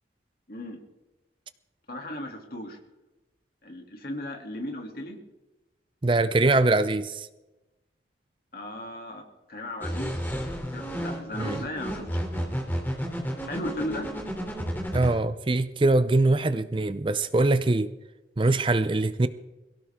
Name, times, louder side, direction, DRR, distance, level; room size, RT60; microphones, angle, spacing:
voice 1, 0.5-0.8 1.9-2.8 3.6-5.2 8.5-9.2 9.5-10.2 10.7-12.6 13.5-14.1, left 1 dB, 55° left, 2.8 m, -36 dB
voice 2, 6.0-7.3 11.4-11.6 14.9-17.9 18.4-19.3, right 2 dB, 30° right, 0.5 m, -23 dB
sound 1, 9.8-15.1, equal, 10° left, 3.1 m, -31 dB
22.5 x 16.5 x 3.7 m
head